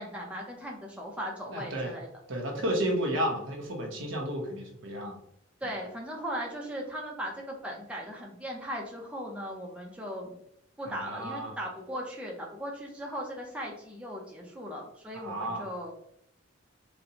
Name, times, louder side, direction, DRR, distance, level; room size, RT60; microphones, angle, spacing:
voice 1, 0.0-2.1 5.6-10.4 10.8-15.9, equal, 5° right, -2 dB, 0.6 m, -38 dB
voice 2, 1.5-1.9 2.3-5.2 10.9-11.5 15.1-15.7, equal, 75° right, 0 dB, 0.9 m, -32 dB
4.2 x 2.2 x 2.8 m, 0.73 s
head